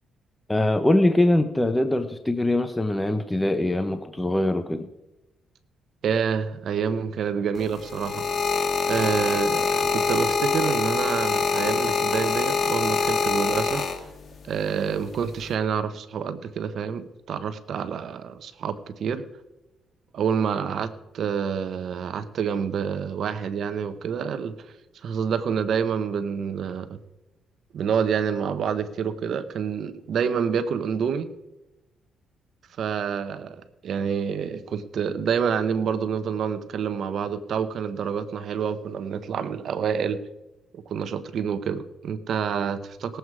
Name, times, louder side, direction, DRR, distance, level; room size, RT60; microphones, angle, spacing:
voice 1, 0.5-4.9, left 1 dB, 10° left, 8 dB, 0.8 m, -22 dB
voice 2, 6.0-8.2 8.9-13.8 14.4-19.2 20.1-24.5 25.0-27.0 27.7-31.3 32.8-40.2 40.7-43.2, right 7 dB, 65° right, 12 dB, 1.0 m, -27 dB
sound 1, 7.6-14.4 15.2-15.5, left 5 dB, 45° left, 1.8 m, -25 dB
19.0 x 8.0 x 4.8 m, 0.99 s
cardioid pair, 90°, 0 cm